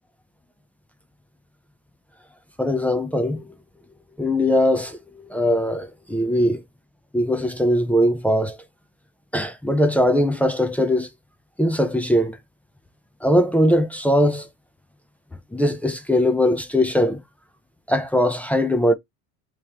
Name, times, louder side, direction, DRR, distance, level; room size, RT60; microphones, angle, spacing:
voice 1, 2.6-3.4 4.2-5.0 5.3-6.6 7.1-8.6 9.3-11.1 11.6-12.4 13.2-14.5 15.5-17.2 17.9-18.9, equal, 5° left, 0.5 m, -20 dB
3.1 x 2.9 x 3.5 m
supercardioid pair, 110°, 35 cm